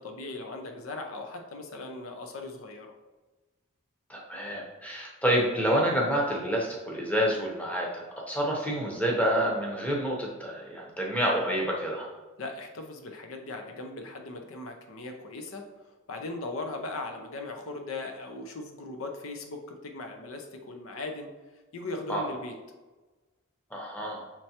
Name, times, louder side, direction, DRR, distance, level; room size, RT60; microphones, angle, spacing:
voice 1, 0.0-2.9 12.4-15.6 16.1-21.3 21.7-22.5, left 2 dB, 75° left, 4 dB, 0.6 m, -38 dB
voice 2, 4.1-12.1 22.1-22.3 23.7-24.3, equal, 5° left, -2 dB, 0.8 m, -28 dB
5.8 x 3.2 x 2.8 m, 1.2 s
head